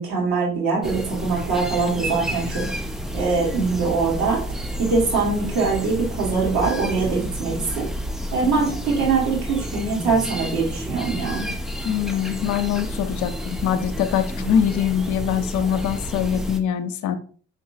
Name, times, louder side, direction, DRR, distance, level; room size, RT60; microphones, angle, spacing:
voice 1, 0.0-2.6 3.1-4.4 4.8-7.9 8.3-11.5, right 4 dB, 60° right, -3 dB, 1.8 m, -23 dB
sound 1, 0.8-16.6, equal, ahead, 0.4 m, -30 dB
voice 2, 11.8-17.2, left 9 dB, 50° left, 10 dB, 0.6 m, -23 dB
4.6 x 3.5 x 2.8 m, 0.42 s
figure-of-eight pair, 45°, 40 cm